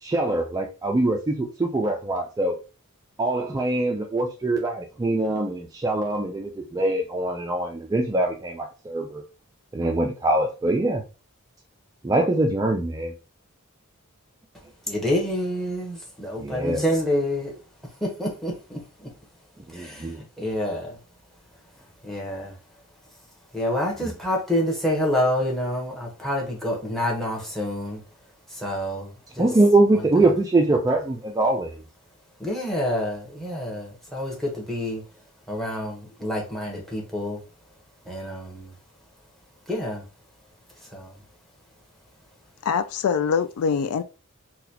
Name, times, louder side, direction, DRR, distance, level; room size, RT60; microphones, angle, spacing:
voice 1, 0.0-2.6 3.2-9.2 9.7-11.0 12.0-13.1 16.4-16.8 19.7-20.2 24.0-24.1 29.4-31.8, right 2 dB, 15° right, 0.3 m, -23 dB
voice 2, 14.9-17.5 18.0-19.1 19.7-20.1 20.4-21.0 22.0-22.5 23.5-28.0 28.6-29.1 29.4-29.5 30.2-30.3 32.4-35.0 35.5-37.4 38.1-38.7 39.7-40.0 40.9-41.1, left 1 dB, ahead, 1.0 m, -27 dB
voice 3, 42.6-44.0, left 6 dB, 70° left, 0.3 m, -23 dB
3.9 x 2.2 x 2.8 m
head